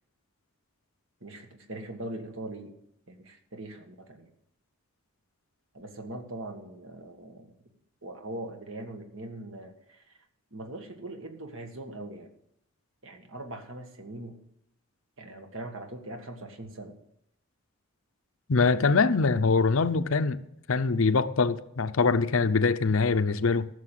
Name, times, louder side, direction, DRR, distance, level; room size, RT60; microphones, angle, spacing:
voice 1, 1.2-2.7 3.1-4.3 5.7-7.5 8.0-10.2 10.5-12.3 13.0-14.4 15.2-17.0, right 1 dB, 65° right, 1.9 m, -41 dB
voice 2, 18.5-20.4 20.7-23.7, left 4 dB, 70° left, 0.7 m, -23 dB
14.5 x 6.8 x 9.2 m
head